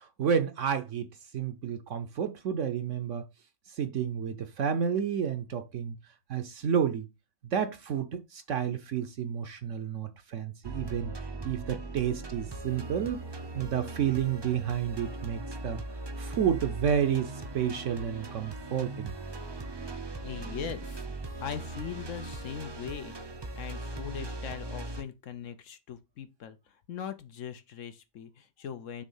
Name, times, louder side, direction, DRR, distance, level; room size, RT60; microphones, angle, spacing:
voice 1, 0.0-3.2 3.8-6.0 6.3-7.1 7.5-11.1 11.4-13.2 13.5-15.8 16.2-19.1, right 8 dB, 65° right, 1.0 m, -30 dB
sound 1, 10.6-25.0, right 2 dB, 35° right, 0.4 m, -39 dB
voice 2, 20.2-21.0 21.4-23.1 23.5-26.6 26.9-29.0, left 8 dB, 65° left, 1.1 m, -40 dB
6.3 x 3.3 x 5.5 m
omnidirectional pair, 1.5 m